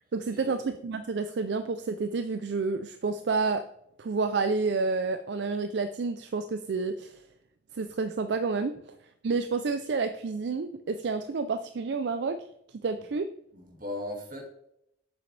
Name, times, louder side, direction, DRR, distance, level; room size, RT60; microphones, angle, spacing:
voice 1, 0.1-3.6 4.0-7.2 7.7-8.8 9.2-12.4 12.7-13.3, right 4 dB, 75° right, 9 dB, 0.4 m, -29 dB
voice 2, 13.5-14.5, left 1 dB, 55° right, 1 dB, 2.2 m, -38 dB
7.7 x 7.0 x 3.3 m, 0.75 s
head